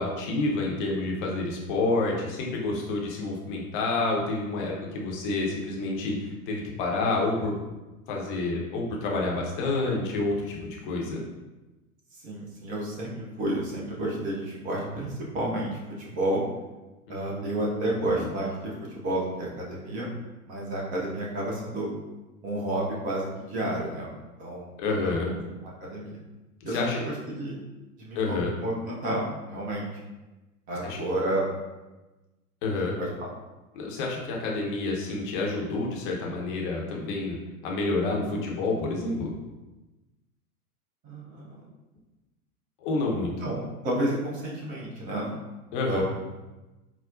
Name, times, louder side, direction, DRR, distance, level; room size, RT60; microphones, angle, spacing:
voice 1, 0.0-7.5 8.1-11.2 17.1-17.7 18.2-18.3 24.8-25.4 26.6-27.0 28.1-28.5 30.8-31.0 32.6-33.0 33.7-37.4 37.6-39.3 42.8-43.3 45.7-46.0, left 3 dB, 35° left, -2 dB, 0.7 m, -29 dB
voice 2, 12.2-13.1 13.4-16.4 17.1-20.1 20.4-21.9 22.4-24.1 24.4-24.7 25.0-25.1 25.8-26.2 26.6-26.8 27.0-27.6 28.0-29.9 30.7-31.5 32.7-33.3 41.0-41.6 43.4-45.3 45.9-46.0, right 1 dB, 20° right, -4 dB, 0.5 m, -31 dB
4.8 x 2.0 x 2.5 m, 1.1 s
figure-of-eight pair, 100°, 45 cm